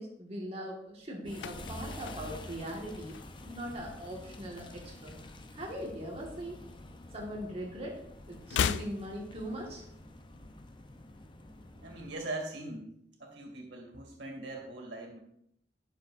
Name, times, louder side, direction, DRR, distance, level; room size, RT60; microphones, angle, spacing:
voice 1, 0.0-5.2 5.5-6.6 7.1-8.0 8.3-9.8, equal, 35° right, -1 dB, 1.7 m, -40 dB
sound 1, 1.0-3.7 4.0-4.3 4.5-6.0 6.3-7.6 7.9-10.0 10.3-10.4, left 7 dB, 90° left, 0.3 m, -38 dB
sound 2, 1.3-12.3, left 1 dB, 25° left, 0.6 m, -48 dB
voice 2, 11.7-12.9 13.2-15.2, right 2 dB, 85° right, 1 dB, 2.2 m, -41 dB
12.0 x 6.5 x 2.5 m, 0.74 s
head